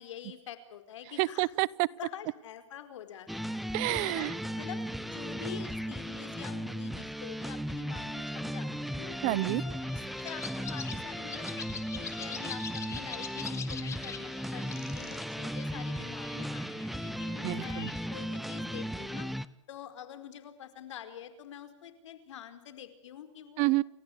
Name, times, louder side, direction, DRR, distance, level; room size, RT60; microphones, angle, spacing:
voice 1, 0.0-1.5 2.0-3.4 3.9-4.3 4.5-9.2 9.6-11.6 11.9-19.3 19.7-23.7, left 10 dB, 75° left, 9 dB, 4.7 m, -46 dB
voice 2, 1.2-1.9 3.7-4.3 9.2-9.6 17.4-17.9 23.6-23.8, right 22 dB, 40° right, 21 dB, 0.8 m, -28 dB
sound 1, 3.3-19.5, equal, ahead, 0.8 m, -36 dB
sound 2, 9.3-18.2, left 7 dB, 20° left, 2.7 m, -45 dB
29.5 x 15.0 x 8.7 m, 0.89 s
hypercardioid pair, 135°, 16 cm